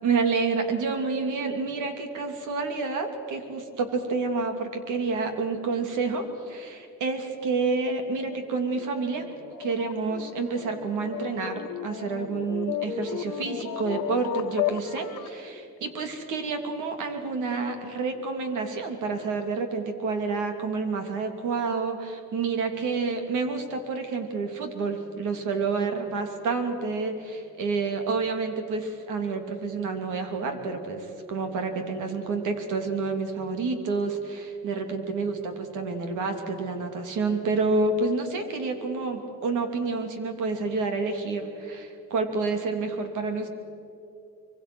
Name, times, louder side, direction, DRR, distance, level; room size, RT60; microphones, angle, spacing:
voice 1, 0.0-9.3 9.6-43.5, right 4 dB, 85° right, 6 dB, 3.1 m, -29 dB
sound 1, 8.1-15.4, left 10 dB, 85° left, 1.2 m, -34 dB
25.0 x 24.0 x 6.3 m, 2.7 s
cardioid pair, 90°, 30 cm